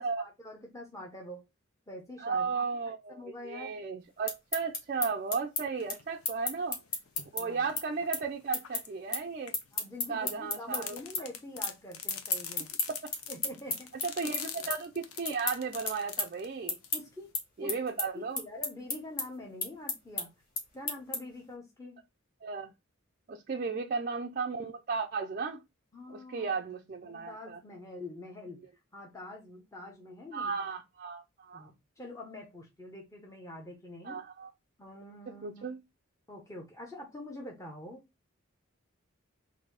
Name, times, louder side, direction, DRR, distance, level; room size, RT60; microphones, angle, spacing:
voice 1, 0.0-1.4 1.9-2.6 3.1-3.8 7.4-7.6 9.7-12.7 13.3-13.9 14.6-14.7 16.9-17.3 17.6-17.7 18.1-20.3 20.7-22.0 23.6-23.8 25.9-26.6 27.0-28.6 28.9-30.5 31.5-34.2 34.8-35.7 36.3-38.0, left 1 dB, 15° left, 0.8 m, -45 dB
voice 2, 2.2-6.8 7.3-9.6 10.1-11.0 12.9-13.0 14.0-16.8 17.6-18.4 22.4-22.7 23.3-25.6 26.1-27.6 30.3-31.7 34.0-34.5 35.3-35.8, right 5 dB, 40° right, 0.4 m, -35 dB
sound 1, 4.1-10.8 11.1-11.8 12.0-21.4, left 3 dB, 40° left, 1.3 m, -34 dB
sound 2, 5.8-7.3 7.8-10.0 10.7-17.3, left 7 dB, 90° left, 0.7 m, -44 dB
4.0 x 2.6 x 4.6 m
head